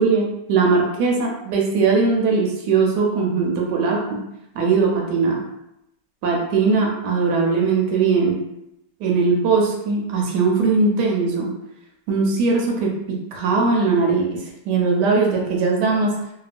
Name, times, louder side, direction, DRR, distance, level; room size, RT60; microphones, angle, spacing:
voice 1, 0.0-4.2 4.5-5.4 6.2-8.4 9.0-11.5 12.1-14.4 14.7-16.1, right 4 dB, 75° right, -1 dB, 1.2 m, -20 dB
2.9 x 2.3 x 2.4 m, 0.83 s
omnidirectional pair, 1.8 m